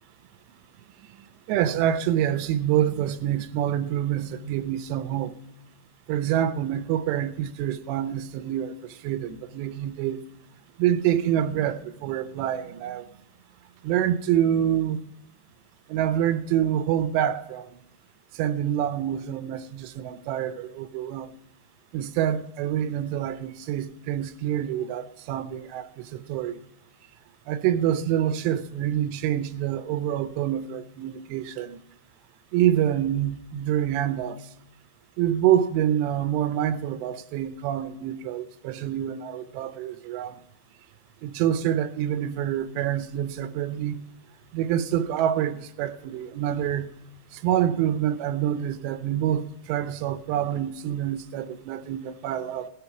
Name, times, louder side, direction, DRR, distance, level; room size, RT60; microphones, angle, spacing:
voice 1, 1.5-5.4 6.1-10.2 10.8-13.1 13.8-15.0 15.9-17.8 18.3-21.3 21.9-26.6 27.5-31.8 32.5-34.4 35.2-40.4 41.2-44.0 44.5-46.9 47.3-52.7, right 10 dB, 85° right, 2.8 m, -26 dB
18.0 x 7.0 x 5.7 m
omnidirectional pair, 5.0 m